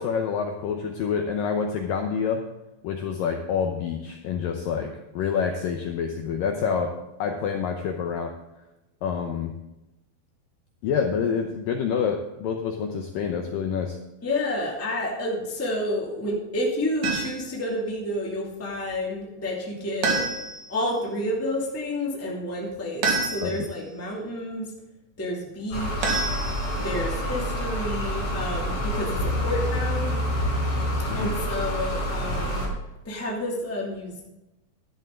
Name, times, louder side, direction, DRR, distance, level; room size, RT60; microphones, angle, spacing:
voice 1, 0.0-2.4 2.8-6.9 7.2-8.3 9.0-9.5 10.8-14.0 23.4-23.6 31.1-31.4, left 6 dB, 75° left, 3 dB, 2.1 m, -27 dB
voice 2, 14.2-20.2 20.7-24.7 25.2-26.3 26.7-30.2 31.1-32.6 33.0-34.2, left 1 dB, 5° left, -3 dB, 1.3 m, -30 dB
sound 1, 17.0-17.6 20.0-20.8 23.0-23.7 26.0-26.9, right 4 dB, 55° right, 3.0 m, -27 dB
sound 2, 25.7-32.7, equal, 40° left, 6.3 m, -27 dB
13.0 x 11.0 x 3.8 m, 0.98 s
omnidirectional pair, 5.0 m